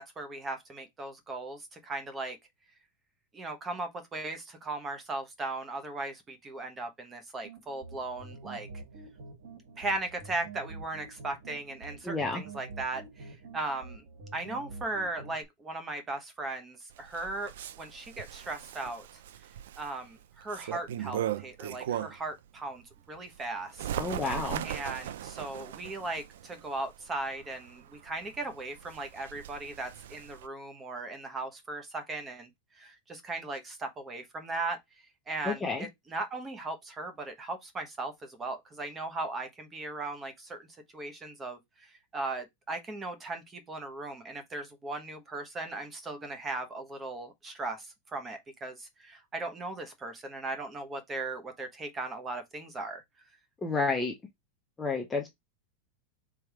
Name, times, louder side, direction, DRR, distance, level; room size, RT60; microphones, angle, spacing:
voice 1, 0.0-2.4 3.3-8.7 9.8-14.0 14.3-17.5 17.8-19.1 19.8-23.9 24.6-32.5 32.8-34.8 35.3-40.7 40.9-53.0, right 2 dB, 15° right, 0.9 m, -38 dB
sound 1, 7.4-15.4, right 3 dB, 65° right, 2.1 m, -47 dB
voice 2, 12.0-12.4 24.0-24.6 35.4-35.9 53.6-54.1 54.8-55.3, left 3 dB, 10° left, 0.7 m, -30 dB
Bird, 16.9-22.3 22.8-30.5, right 11 dB, 80° right, 0.4 m, -39 dB
3.4 x 3.4 x 4.6 m
supercardioid pair, 165°, 0 cm